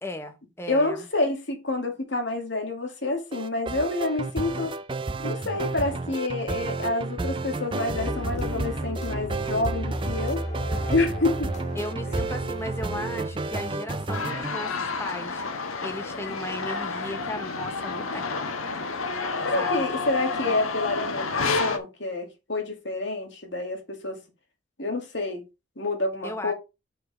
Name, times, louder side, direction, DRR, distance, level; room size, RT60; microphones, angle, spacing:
voice 1, 0.0-1.1 11.8-18.3 19.6-19.9 26.2-26.5, left 1 dB, 10° left, 0.9 m, -36 dB
voice 2, 0.7-4.7 5.2-10.4 10.9-11.5 19.4-24.2 24.8-25.4 25.8-26.5, left 2 dB, 60° left, 2.3 m, -28 dB
sound 1, 3.3-14.6, right 3 dB, 25° right, 0.5 m, -32 dB
sound 2, 7.9-14.0, equal, 35° left, 1.9 m, -33 dB
sound 3, 14.1-21.8, left 4 dB, 90° left, 1.3 m, -29 dB
6.3 x 5.1 x 4.9 m
head